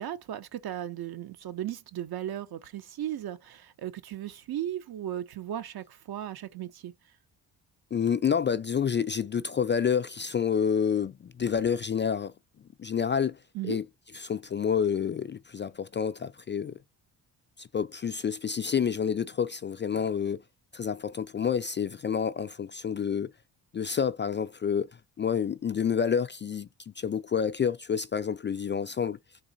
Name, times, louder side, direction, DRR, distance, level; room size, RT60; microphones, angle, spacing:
voice 1, 0.0-6.9 13.5-13.8, right 11 dB, 55° right, 0.8 m, -36 dB
voice 2, 7.9-12.3 12.8-13.4 13.6-13.8 14.1-16.7 17.6-20.4 20.7-23.3 23.7-24.9 25.2-26.7 27.0-29.2, left 7 dB, 30° left, 0.3 m, -28 dB
3.9 x 2.8 x 4.0 m
supercardioid pair, 60°, 44 cm